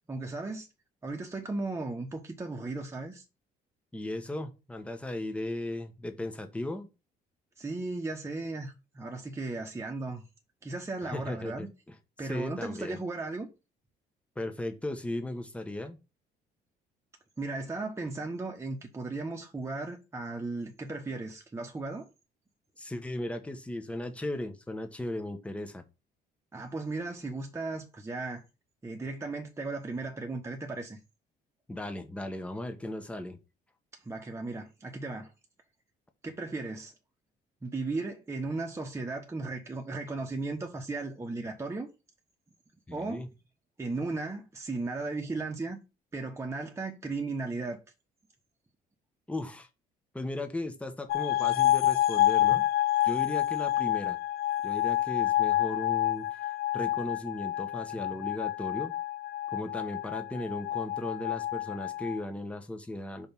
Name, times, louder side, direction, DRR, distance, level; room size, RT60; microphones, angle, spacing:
voice 1, 0.1-0.7 1.0-3.2 7.6-10.2 10.6-11.7 12.2-13.5 17.4-22.1 26.5-28.4 28.8-31.0 34.0-35.3 36.2-36.9 37.6-41.9 42.9-43.2 43.8-45.8 46.1-47.8, right 3 dB, 15° right, 1.2 m, -36 dB
voice 2, 3.9-6.9 11.0-11.9 12.2-13.0 14.4-16.0 22.8-25.8 31.7-33.4 42.9-43.3 49.3-49.7 50.1-52.6 53.0-54.2 54.6-58.9 59.5-63.3, left 1 dB, 5° left, 1.0 m, -36 dB
sound 1, 51.1-62.2, left 13 dB, 70° left, 0.7 m, -28 dB
5.2 x 4.5 x 5.3 m
cardioid pair, 110°, 17 cm